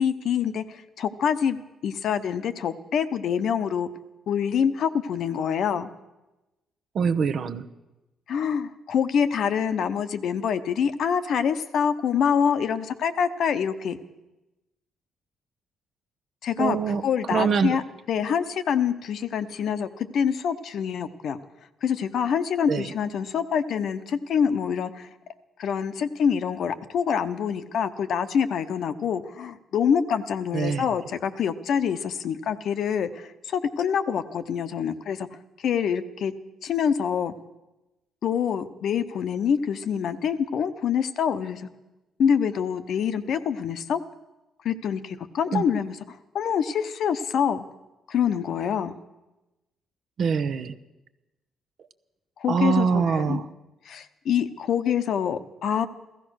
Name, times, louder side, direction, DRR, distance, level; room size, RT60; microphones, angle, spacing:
voice 1, 0.0-3.9 4.3-5.9 8.3-14.0 16.4-17.8 18.1-21.4 21.8-25.1 25.6-35.3 35.6-36.3 36.6-37.3 38.2-41.7 42.2-44.0 44.6-47.6 48.1-48.9 52.4-53.4 53.9-55.9, left 7 dB, 70° left, 11 dB, 0.9 m, -26 dB
voice 2, 6.9-7.6 16.6-17.0 17.3-17.8 22.7-22.9 30.5-30.9 45.5-45.6 50.2-50.7 52.5-53.4, right 6 dB, 60° right, 12 dB, 0.9 m, -24 dB
15.5 x 14.5 x 6.4 m, 1.0 s
cardioid pair, 90°, 0 cm